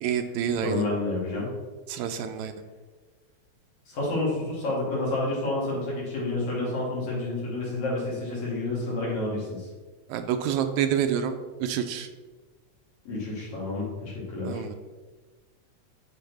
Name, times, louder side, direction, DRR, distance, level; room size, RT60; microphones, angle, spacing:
voice 1, 0.0-0.8 1.9-2.5 10.1-11.3 11.6-12.1 14.5-14.7, right 9 dB, 80° right, 8 dB, 1.9 m, -27 dB
voice 2, 0.6-1.5 3.9-9.7 13.1-14.6, left 2 dB, 75° left, -6 dB, 3.8 m, -29 dB
10.0 x 4.6 x 3.4 m, 1.3 s
omnidirectional pair, 3.3 m